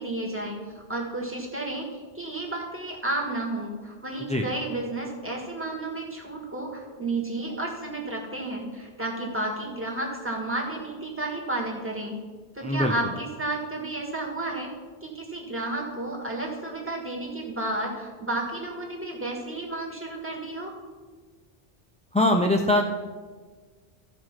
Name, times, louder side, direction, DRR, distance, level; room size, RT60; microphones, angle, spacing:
voice 1, 0.0-1.9 2.1-12.1 12.5-14.7 15.0-20.7, right 2 dB, 10° right, -1 dB, 1.7 m, -32 dB
voice 2, 12.6-12.9 22.1-22.8, left 1 dB, 10° left, 3 dB, 0.3 m, -22 dB
14.0 x 4.8 x 5.9 m, 1.5 s
omnidirectional pair, 1.1 m